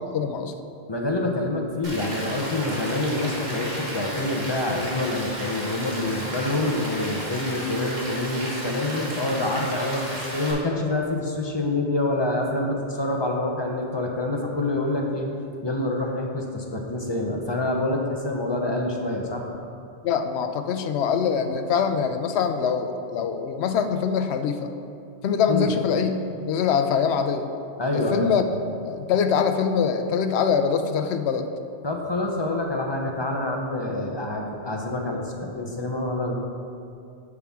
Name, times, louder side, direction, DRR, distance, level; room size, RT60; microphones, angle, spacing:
voice 1, 0.1-0.5 20.0-24.7 25.2-27.5 27.9-28.4 28.9-31.5, left 6 dB, 70° left, 7 dB, 0.8 m, -24 dB
voice 2, 0.9-15.3 15.6-19.4 25.5-25.7 27.8-28.3 31.8-36.3, left 2 dB, 25° left, 0 dB, 0.7 m, -26 dB
Rain, 1.8-10.5, equal, 40° right, 1.7 m, -34 dB
9.6 x 5.7 x 3.6 m, 2.5 s
omnidirectional pair, 1.2 m